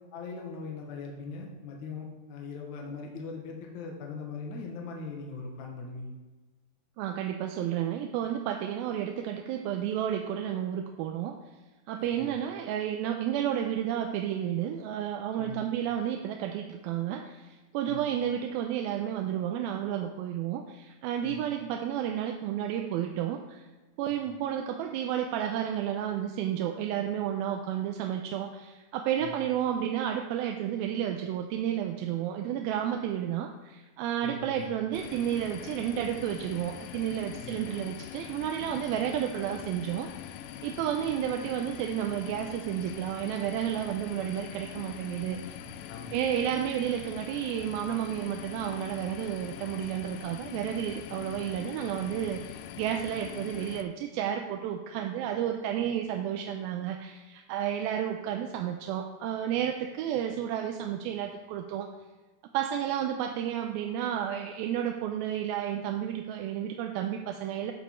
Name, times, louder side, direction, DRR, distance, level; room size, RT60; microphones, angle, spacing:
voice 1, 0.1-6.1 12.2-12.3 15.4-15.6 17.8-18.0 21.2-21.4 29.2-29.3 34.2-34.7 37.4-37.6 45.5-46.1, left 4 dB, 60° left, 0 dB, 2.3 m, -40 dB
voice 2, 7.0-11.4 11.9-23.6 24.0-40.1 40.6-45.6 46.1-61.9 62.5-67.7, right 10 dB, 80° right, 4 dB, 2.3 m, -31 dB
sound 1, 34.9-53.8, left 11 dB, 85° left, 1.9 m, -43 dB
13.5 x 5.2 x 4.3 m, 1.2 s
omnidirectional pair, 4.4 m